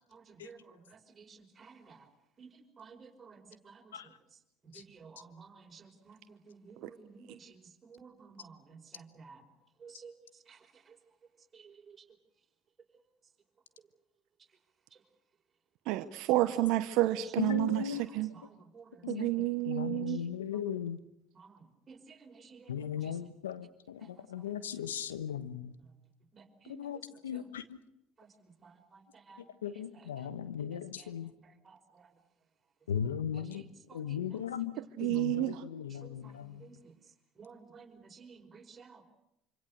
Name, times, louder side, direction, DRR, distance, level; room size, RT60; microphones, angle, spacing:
voice 1, 2.8-3.4 4.7-6.2 6.5-7.4 7.9-8.5 8.9-9.4 9.8-10.1 18.3-18.4 18.7-18.8 21.9-22.0 22.2-22.6 26.3-26.8 27.3-27.4 29.3-29.4 33.5-33.6 34.1-34.2 36.0-36.1 36.6-36.7 37.4-37.9 38.2-39.0, right 5 dB, 30° right, 2 dB, 5.2 m, -52 dB
voice 2, 15.9-18.3 19.1-20.2 35.0-35.6, right 16 dB, 65° right, 11 dB, 1.0 m, -30 dB
voice 3, 17.4-18.0 19.0-21.0 22.7-25.7 26.7-27.6 29.6-31.3 32.9-33.6 33.9-34.7 35.0-36.6, left 8 dB, 90° left, 13 dB, 1.2 m, -37 dB
26.5 x 25.5 x 6.6 m, 0.83 s
hypercardioid pair, 70°, 0 cm